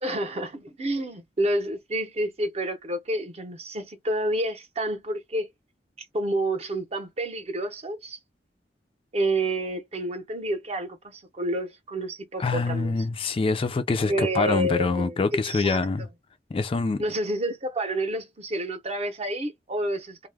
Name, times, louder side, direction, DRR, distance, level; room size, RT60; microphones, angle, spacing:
voice 1, 0.0-5.5 6.0-8.2 9.1-12.9 14.1-15.8 17.0-20.3, right 1 dB, 35° right, 0.7 m, -29 dB
voice 2, 12.4-16.1 16.5-17.0, left 3 dB, 30° left, 0.3 m, -25 dB
2.2 x 2.0 x 3.3 m
head